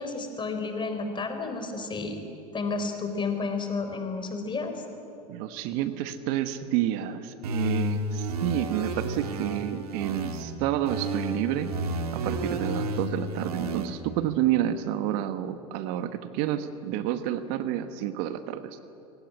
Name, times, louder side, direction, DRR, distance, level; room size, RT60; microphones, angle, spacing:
voice 1, 0.0-2.2 2.5-4.7, left 4 dB, 25° left, 6 dB, 4.1 m, -31 dB
voice 2, 5.3-11.7 12.1-18.8, right 11 dB, 60° right, 11 dB, 1.3 m, -29 dB
sound 1, 7.4-10.4 10.9-13.9, right 1 dB, 85° right, 2.3 m, -31 dB
22.5 x 18.0 x 9.9 m, 2.9 s
hypercardioid pair, 85°, 19 cm